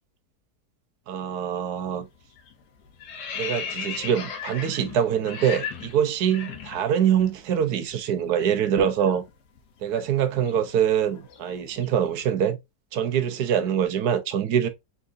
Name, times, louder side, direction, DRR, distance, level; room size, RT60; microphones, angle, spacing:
voice 1, 1.1-2.0 3.4-9.2 9.8-12.6 12.9-14.7, right 9 dB, 75° right, 1.3 m, -24 dB
sound 1, 1.8-2.1 2.4-7.3 7.6-7.8 8.1-12.1, left 7 dB, 80° left, 1.4 m, -37 dB
4.2 x 3.6 x 2.5 m
omnidirectional pair, 1.7 m